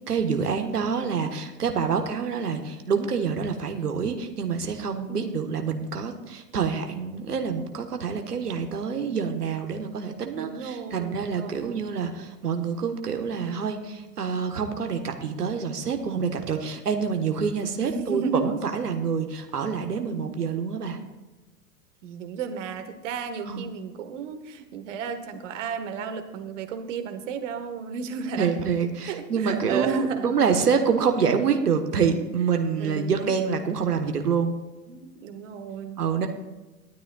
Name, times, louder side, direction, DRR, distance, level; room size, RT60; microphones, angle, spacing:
voice 1, 0.1-21.0 23.4-23.7 28.4-34.5 36.0-36.3, right 6 dB, 70° right, 5 dB, 1.5 m, -26 dB
voice 2, 5.1-5.5 10.4-11.9 17.8-18.5 22.0-28.5 29.0-30.3 32.7-33.3 34.9-36.0, right 6 dB, 50° right, 8 dB, 1.5 m, -33 dB
18.5 x 12.5 x 2.4 m, 1.2 s
figure-of-eight pair, 95°, 47 cm